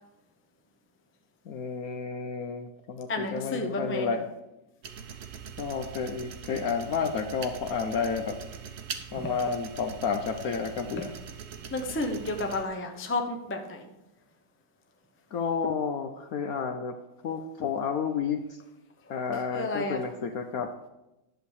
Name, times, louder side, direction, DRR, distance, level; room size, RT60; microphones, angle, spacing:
voice 1, 1.5-4.2 5.6-8.4 9.1-11.1 15.3-17.0 17.2-18.4 19.1-20.7, left 6 dB, 65° left, 6 dB, 0.9 m, -31 dB
voice 2, 3.1-4.1 9.1-9.3 11.7-13.9 19.5-20.0, left 2 dB, 15° left, 4 dB, 0.4 m, -31 dB
sound 1, 4.8-12.6, right 7 dB, 50° right, 1.0 m, -42 dB
11.5 x 7.1 x 4.7 m, 0.95 s
omnidirectional pair, 2.1 m